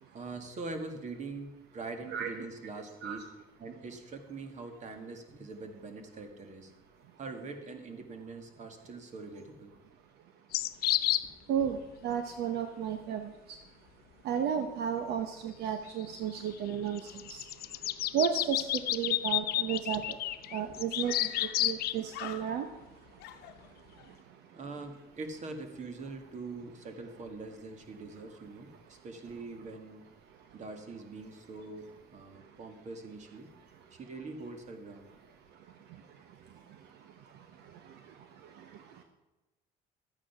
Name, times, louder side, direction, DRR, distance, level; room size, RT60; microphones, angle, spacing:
voice 1, 0.1-3.2 3.6-6.7 7.2-9.7 11.6-11.7 16.7-16.8 17.6-17.9 19.6-19.7 20.7-21.0 24.5-30.0 30.5-33.5 33.9-35.3, right 3 dB, 45° right, 6 dB, 2.0 m, -43 dB
sound 1, 10.5-11.3 16.0-16.1 17.0-22.0, left 14 dB, 65° left, 0.6 m, -30 dB
voice 2, 12.0-13.2 14.3-17.0 17.3-17.4 18.1-18.6 18.9-20.0 20.5-21.1 21.6-22.6, right 8 dB, 80° right, 7 dB, 1.0 m, -32 dB
Screaming, 20.2-20.3 21.0-21.8 22.1-22.9 23.2-24.1, left 12 dB, 90° left, 1.0 m, -45 dB
12.5 x 9.1 x 5.9 m, 1.1 s
cardioid pair, 110°, 17 cm